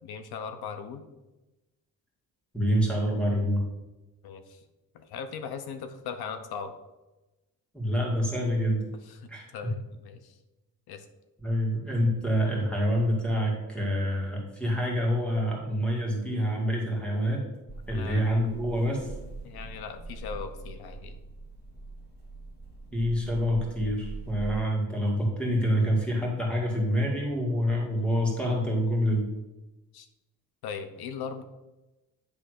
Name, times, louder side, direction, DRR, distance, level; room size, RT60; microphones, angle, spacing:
voice 1, 0.0-1.1 4.2-4.6 4.9-6.7 9.1-10.4 10.9-11.1 17.9-18.3 19.4-21.2 29.9-30.1 30.6-31.4, left 6 dB, 85° left, 8 dB, 0.8 m, -39 dB
voice 2, 2.5-3.6 7.7-8.8 9.3-9.7 11.4-17.5 17.9-19.1 22.9-29.3, equal, 5° left, -3 dB, 2.1 m, -27 dB
sound 1, 17.7-24.7, right 3 dB, 25° left, 2.0 m, -42 dB
10.0 x 3.4 x 6.4 m, 1.1 s
cardioid pair, 160°, 36 cm